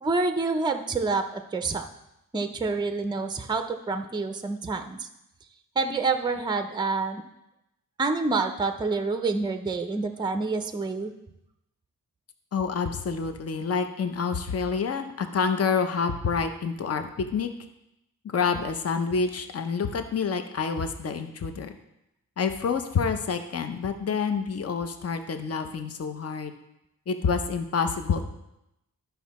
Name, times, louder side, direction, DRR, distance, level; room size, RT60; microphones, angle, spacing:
voice 1, 0.0-1.9 2.3-5.1 5.8-7.2 8.0-11.1, right 3 dB, 15° right, 7 dB, 0.5 m, -27 dB
voice 2, 12.5-17.5 18.2-21.8 22.4-26.5 27.1-28.3, left 5 dB, 45° left, 8 dB, 0.6 m, -28 dB
12.0 x 5.9 x 4.1 m, 0.86 s
wide cardioid pair, 180°, 35 cm